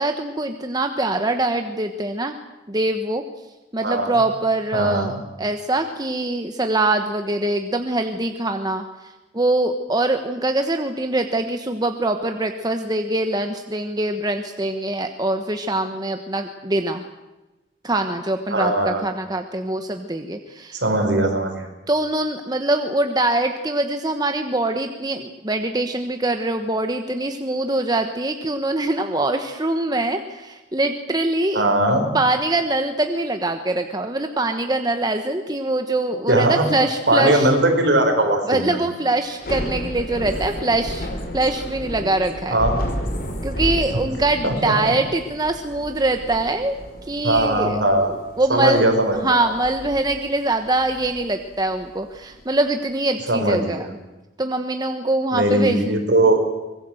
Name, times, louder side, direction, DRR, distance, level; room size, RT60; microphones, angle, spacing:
voice 1, 0.0-2.3 2.7-3.2 3.7-5.1 5.4-17.0 17.8-20.8 21.9-31.6 32.1-37.5 38.5-41.1 41.3-42.6 43.4-46.7 47.1-53.9 54.4-56.0, right 2 dB, 20° right, 6 dB, 1.2 m, -23 dB
voice 2, 4.7-5.1 18.5-19.0 20.7-21.7 31.5-32.1 36.3-36.7 37.1-38.8 42.5-42.8 44.4-44.9 47.2-48.1 48.5-49.5 53.3-53.8 55.3-56.4, right 1 dB, 65° right, 4 dB, 5.3 m, -19 dB
Thunder / Rain, 39.3-52.4, equal, 50° left, 4.5 m, -32 dB
Human voice, 39.6-44.9, left 1 dB, 65° left, 3.8 m, -40 dB
24.5 x 20.5 x 7.9 m, 1.1 s
head